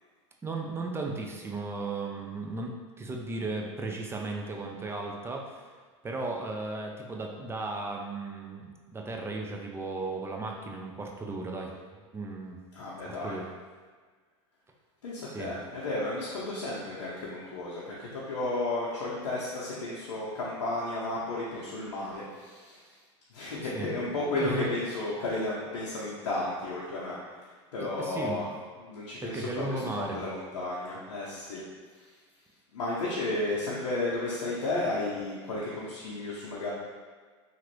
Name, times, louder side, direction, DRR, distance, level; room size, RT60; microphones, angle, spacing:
voice 1, 0.4-5.6 6.0-11.7 12.1-12.6 13.2-13.4 15.3-15.5 23.6-24.7 27.8-28.4 29.2-30.2, right 3 dB, 15° right, 1 dB, 0.4 m, -35 dB
voice 2, 12.7-13.3 15.0-22.8 23.3-27.2 27.7-28.4 28.8-29.8 30.1-31.6 32.7-36.7, left 2 dB, 85° left, -6 dB, 0.6 m, -33 dB
2.9 x 2.5 x 3.0 m, 1.5 s
hypercardioid pair, 100°, 15 cm